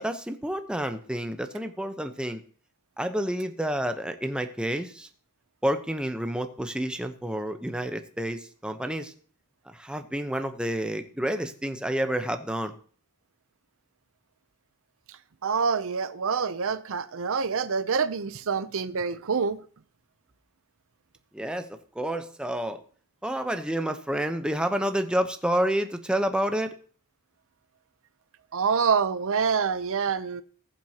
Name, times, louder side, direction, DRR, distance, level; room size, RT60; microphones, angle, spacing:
voice 1, 0.0-2.4 3.0-5.1 5.6-9.1 9.7-12.7 21.3-22.8 23.2-26.7, right 1 dB, 5° right, 0.9 m, -29 dB
voice 2, 15.4-19.6 28.5-30.4, right 5 dB, 65° right, 0.6 m, -26 dB
19.5 x 7.5 x 2.9 m
head